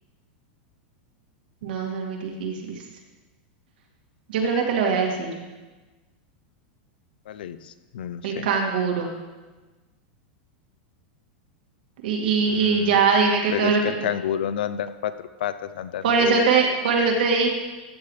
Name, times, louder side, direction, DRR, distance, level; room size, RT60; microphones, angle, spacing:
voice 1, 1.6-2.8 4.3-5.4 8.2-9.2 12.0-14.1 16.0-17.5, right 5 dB, 75° right, 0 dB, 2.2 m, -22 dB
voice 2, 7.3-8.5 12.3-13.0 13.5-15.1 15.4-16.5, left 9 dB, 80° left, 13 dB, 0.6 m, -30 dB
14.0 x 8.8 x 3.3 m, 1.2 s
supercardioid pair, 180°, 5 cm